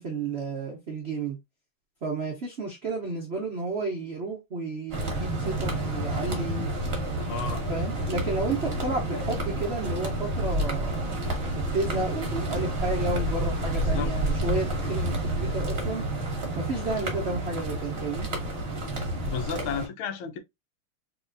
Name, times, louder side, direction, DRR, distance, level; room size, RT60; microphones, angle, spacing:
voice 1, 0.0-1.4 2.0-6.7 7.7-11.0 11.7-16.0 16.6-18.3, right 3 dB, 90° right, 0.5 m, -32 dB
sound 1, 4.9-19.9, right 1 dB, 40° right, 1.0 m, -29 dB
voice 2, 7.3-7.6 13.8-14.1 19.3-20.4, left 6 dB, 75° left, 1.5 m, -33 dB
4.1 x 2.9 x 2.5 m
omnidirectional pair, 2.4 m